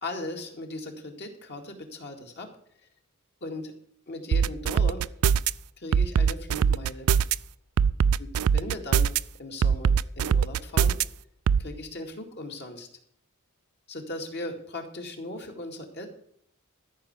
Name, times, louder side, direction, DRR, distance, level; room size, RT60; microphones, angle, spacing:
voice 1, 0.0-2.5 3.4-3.7 4.1-5.0 5.8-7.1 8.2-9.1 9.4-11.0 11.6-12.9 13.9-16.1, left 2 dB, 55° left, 3 dB, 2.3 m, -38 dB
sound 1, 4.3-5.5 5.9-7.4 7.8-9.2 9.6-11.0 11.5-11.6, right 7 dB, 90° right, 0.4 m, -21 dB
13.5 x 5.7 x 8.2 m, 0.67 s
head